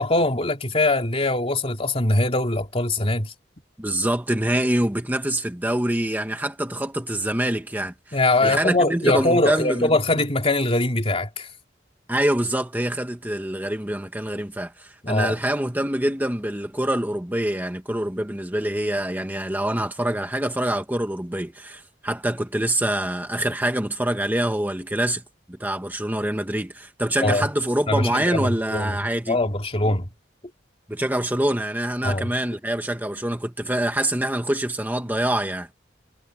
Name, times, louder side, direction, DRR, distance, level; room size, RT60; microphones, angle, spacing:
voice 1, 0.0-3.3 8.1-11.5 15.0-15.4 27.2-27.5 27.9-29.0 29.3-30.1 32.0-32.3, left 2 dB, 35° left, 3.3 m, -22 dB
voice 2, 3.8-9.9 12.1-25.2 25.5-29.4 30.9-35.7, right 1 dB, 10° right, 1.3 m, -25 dB
head